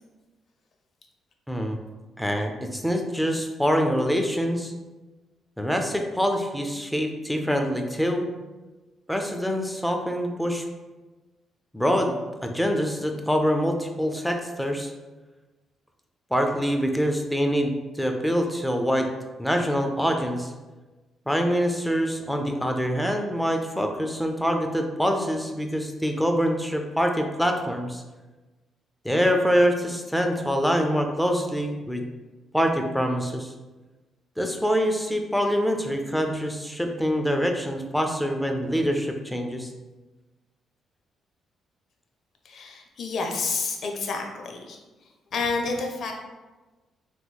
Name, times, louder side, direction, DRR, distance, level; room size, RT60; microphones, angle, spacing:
voice 1, 2.2-4.7 5.6-8.3 9.1-10.6 11.7-12.1 12.4-14.9 16.3-19.1 19.4-20.5 21.3-28.0 29.0-32.0 32.5-33.5 34.4-39.7, equal, 5° left, 4 dB, 0.4 m, -25 dB
voice 2, 42.4-44.8 45.3-46.1, left 4 dB, 60° left, 3 dB, 0.5 m, -29 dB
3.7 x 3.0 x 2.2 m, 1.2 s
cardioid pair, 90°, 0 cm